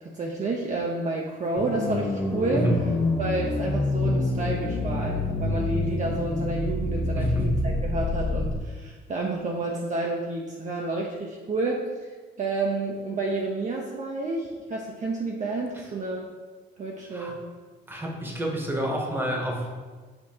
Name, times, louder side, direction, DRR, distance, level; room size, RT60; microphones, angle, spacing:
voice 1, 0.0-2.6 3.2-11.8 12.4-16.2 16.8-17.4, right 2 dB, 40° right, -1 dB, 0.5 m, -30 dB
sound 1, 1.6-8.6, left 2 dB, 80° left, 1.5 m, -27 dB
voice 2, 2.5-2.8 7.1-7.7 17.1-17.3 17.9-19.7, equal, 10° right, -1 dB, 0.9 m, -28 dB
6.5 x 2.6 x 2.8 m, 1.4 s
cardioid pair, 90°, 20 cm